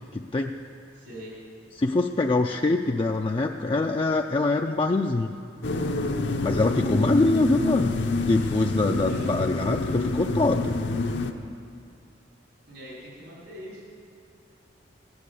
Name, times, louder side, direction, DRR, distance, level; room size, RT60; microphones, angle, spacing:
voice 1, 0.1-0.6 1.8-5.3 6.4-10.7, left 2 dB, 30° left, 3 dB, 0.4 m, -24 dB
voice 2, 0.9-1.4 9.0-9.3 12.7-13.8, equal, 80° right, -5 dB, 3.8 m, -42 dB
sound 1, 5.6-11.3, left 2 dB, 65° left, 0.8 m, -27 dB
15.5 x 9.7 x 6.8 m, 2.4 s
head